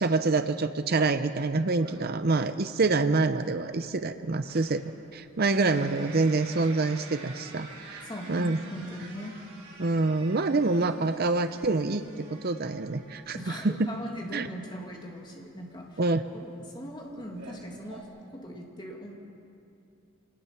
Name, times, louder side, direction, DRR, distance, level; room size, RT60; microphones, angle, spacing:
voice 1, 0.0-4.8 5.1-8.0 8.3-8.6 9.8-13.9 14.3-14.5 16.0-16.2, right 3 dB, 45° right, 9 dB, 0.6 m, -26 dB
sound 1, 1.8-18.0, right 3 dB, 90° right, 6.2 m, -49 dB
voice 2, 5.5-5.9 8.0-9.4 13.3-18.1 18.3-19.2, equal, 20° left, -1 dB, 2.6 m, -40 dB
25.5 x 19.5 x 5.9 m, 2.7 s
head